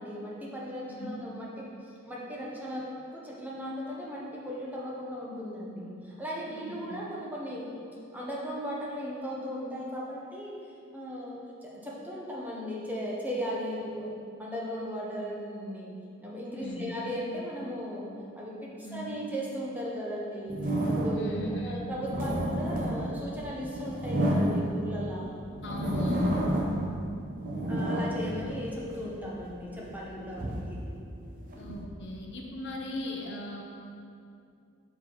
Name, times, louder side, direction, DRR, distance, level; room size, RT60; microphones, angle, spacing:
voice 1, 0.0-7.7 8.1-25.4 27.7-30.8, equal, 10° right, -5 dB, 0.8 m, -37 dB
voice 2, 0.9-1.2 6.5-7.0 16.6-17.0 18.8-19.2 21.2-21.9 25.6-26.5 31.6-33.6, left 1 dB, 55° left, 0 dB, 0.7 m, -39 dB
sound 1, 20.5-21.4 21.9-25.1 25.6-26.9 27.2-29.1 29.7-31.8, right 1 dB, 40° right, 0.7 m, -30 dB
6.4 x 4.6 x 3.8 m, 2.4 s
head